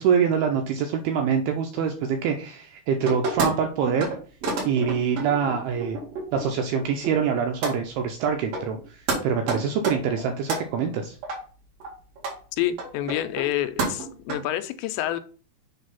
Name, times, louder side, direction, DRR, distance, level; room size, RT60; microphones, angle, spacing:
voice 1, 0.0-4.1 4.7-6.0 6.3-11.2, right 7 dB, 85° right, 2.3 m, -25 dB
sound 1, 3.1-3.5 3.9-4.2 4.4-6.4 6.8-7.3 7.6-7.8 8.2-8.3 8.5-8.8 9.1-9.2 9.5-10.6 11.2-11.4 11.8-11.9 12.2-12.3 12.8-13.5 13.8-14.3, right 3 dB, 55° right, 3.5 m, -29 dB
voice 2, 12.5-15.2, left 12 dB, 85° left, 2.8 m, -28 dB
7.3 x 3.3 x 5.7 m
omnidirectional pair, 5.2 m